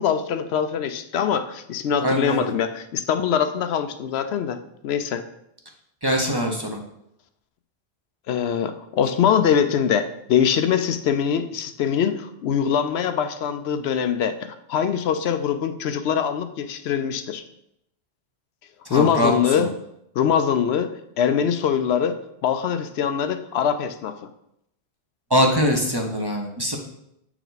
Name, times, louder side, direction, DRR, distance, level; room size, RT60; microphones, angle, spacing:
voice 1, 0.0-4.6 4.8-5.2 8.3-17.4 18.9-19.7 20.2-24.1, left 8 dB, 75° left, 9 dB, 0.8 m, -23 dB
voice 2, 2.0-2.4 6.0-6.8 18.9-19.7 25.3-26.8, equal, 25° right, 1 dB, 0.7 m, -22 dB
7.8 x 4.6 x 4.0 m, 0.78 s
omnidirectional pair, 1.1 m